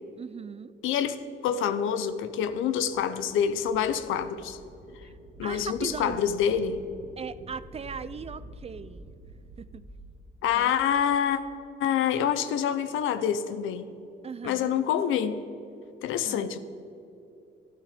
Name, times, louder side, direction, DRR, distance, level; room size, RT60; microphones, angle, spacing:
voice 1, 0.2-0.7 5.0-5.1 5.4-6.2 7.2-9.1 9.6-9.8 10.5-10.7 14.2-14.8 16.3-16.6, right 6 dB, 30° right, 16 dB, 0.5 m, -38 dB
voice 2, 0.8-4.6 5.4-6.8 10.4-11.4 11.8-13.9 14.4-15.4 16.0-16.6, left 8 dB, 90° left, 12 dB, 0.8 m, -26 dB
sound 1, 1.8-11.9, right 1 dB, 45° right, 1.3 m, -49 dB
11.5 x 11.5 x 5.1 m, 2.8 s
cardioid pair, 90°, 20 cm